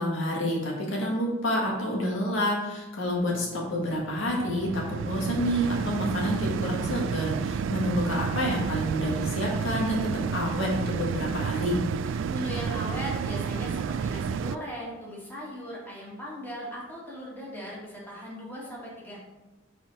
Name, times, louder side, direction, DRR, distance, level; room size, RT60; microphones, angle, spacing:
voice 1, 0.0-11.8, equal, 80° left, -3 dB, 1.8 m, -28 dB
sound 1, 3.3-14.6, right 6 dB, 70° right, 0.3 m, -31 dB
voice 2, 12.0-19.2, equal, 10° left, -6 dB, 2.2 m, -38 dB
8.0 x 4.5 x 4.2 m, 1.1 s
head